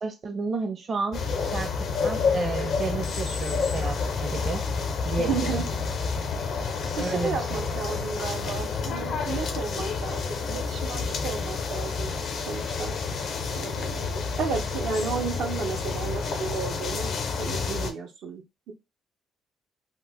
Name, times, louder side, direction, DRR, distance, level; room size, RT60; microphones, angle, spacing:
voice 1, 0.0-1.2 1.5-1.8 2.0-4.6 5.0-5.6 7.0-7.7, right 3 dB, 45° right, 0.6 m, -31 dB
sound 1, 1.1-17.9, left 5 dB, 65° left, 0.5 m, -29 dB
voice 2, 5.2-5.8 6.8-12.2 12.5-12.9 13.6-17.1 17.4-18.7, right 5 dB, 80° right, 0.7 m, -33 dB
2.9 x 2.0 x 3.4 m
cardioid pair, 90°, 0 cm